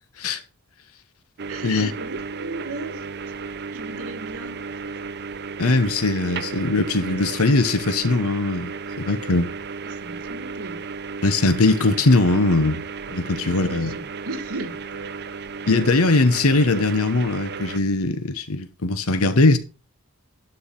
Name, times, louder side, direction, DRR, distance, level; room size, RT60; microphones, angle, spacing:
sound 1, 1.4-17.8, right 5 dB, 50° right, 0.6 m, -34 dB
voice 1, 1.5-3.4 3.7-4.8 9.8-10.8 13.4-14.8, right 2 dB, 80° right, 1.4 m, -36 dB
voice 2, 5.6-9.5 11.2-12.8 13.1-13.9 15.7-19.6, left 2 dB, 80° left, 1.0 m, -20 dB
12.0 x 4.7 x 5.3 m
head